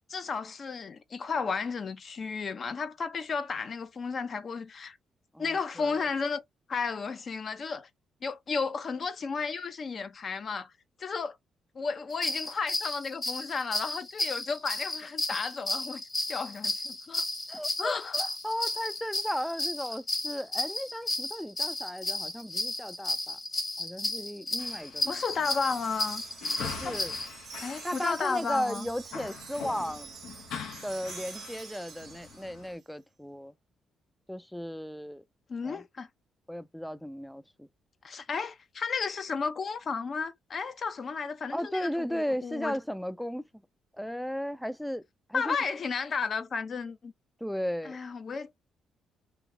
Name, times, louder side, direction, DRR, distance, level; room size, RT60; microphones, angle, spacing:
voice 1, 0.0-5.0 5.4-6.4 6.7-7.9 8.2-10.7 11.0-11.4 11.7-16.0 16.3-17.2 17.8-18.2 25.1-26.2 26.8-27.0 27.6-28.9 35.5-36.1 38.0-42.8 45.3-47.1 47.9-48.5, left 5 dB, 45° left, 0.6 m, -33 dB
voice 2, 5.3-6.1 17.5-23.4 23.8-25.2 26.6-27.2 27.8-30.1 30.8-33.5 34.3-35.2 35.6-35.8 36.5-37.7 41.5-43.5 43.9-45.0 45.3-45.6 47.4-48.0, equal, ahead, 0.3 m, -35 dB
sound 1, 12.1-27.3, left 2 dB, 30° left, 1.2 m, -33 dB
sound 2, 24.6-32.7, left 6 dB, 80° left, 0.7 m, -44 dB
Wind chime, 25.2-32.7, right 7 dB, 60° right, 0.7 m, -47 dB
2.9 x 2.0 x 3.6 m
cardioid pair, 90°, 0 cm